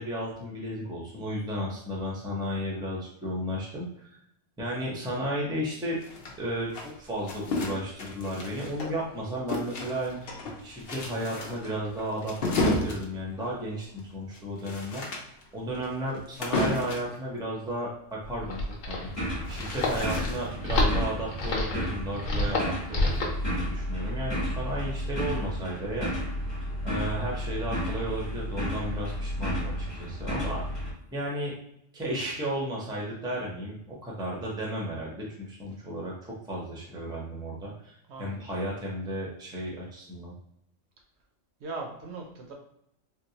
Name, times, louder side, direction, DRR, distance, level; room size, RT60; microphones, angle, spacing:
voice 1, 0.0-4.2 4.6-6.0 6.4-10.4 10.6-15.1 15.5-19.1 19.5-26.1 26.8-30.6 31.1-31.5 31.9-36.1 36.5-40.3, equal, 5° right, -3 dB, 0.5 m, -34 dB
sound 1, 6.0-9.1 9.5-17.2 19.0-20.7, left 2 dB, 60° left, 0.8 m, -33 dB
sound 2, 18.2-23.4, left 2 dB, 85° left, 1.1 m, -28 dB
sound 3, 19.0-30.9, equal, 20° left, 1.0 m, -33 dB
voice 2, 30.3-30.6 38.1-38.5 41.6-42.5, right 3 dB, 65° right, 1 dB, 0.8 m, -40 dB
3.6 x 2.2 x 2.8 m, 0.75 s
omnidirectional pair, 1.3 m